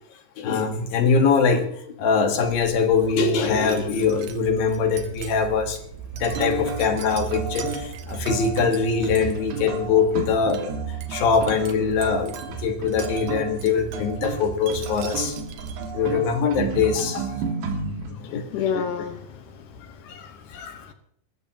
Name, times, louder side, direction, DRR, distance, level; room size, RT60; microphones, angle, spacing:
voice 1, 0.4-5.8 6.1-15.4 15.9-17.3 18.1-18.6 20.0-20.8, left 5 dB, 60° left, 6 dB, 2.8 m, -23 dB
Wind chime, 2.4-16.1, right 7 dB, 65° right, 2.6 m, -39 dB
sound 1, 6.3-18.1, right 5 dB, 90° right, 4.5 m, -32 dB
voice 2, 18.2-19.7 20.5-20.9, left 7 dB, 75° left, 7 dB, 1.9 m, -30 dB
28.0 x 13.5 x 2.9 m, 0.66 s
omnidirectional pair, 5.3 m